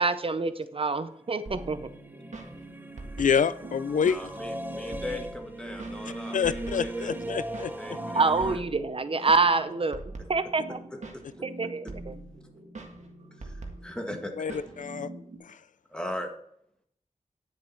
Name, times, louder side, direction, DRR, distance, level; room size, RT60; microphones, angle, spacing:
voice 1, 0.0-1.9 8.1-10.8 11.4-12.1, right 3 dB, 45° right, 12 dB, 0.5 m, -26 dB
sound 1, 1.3-8.6, right 1 dB, 15° right, 0.8 m, -38 dB
sound 2, 1.5-15.4, right 2 dB, 65° right, 1.7 m, -43 dB
voice 2, 3.2-4.3 6.3-7.7 14.4-15.1 15.4-15.6, left 7 dB, 90° left, 16 dB, 0.4 m, -27 dB
voice 3, 4.0-7.1 7.5-8.6 10.9-11.2 13.4-14.6 15.9-16.3, left 1 dB, 5° left, 3 dB, 1.6 m, -39 dB
10.0 x 7.2 x 4.4 m, 0.72 s
wide cardioid pair, 95°, 13 cm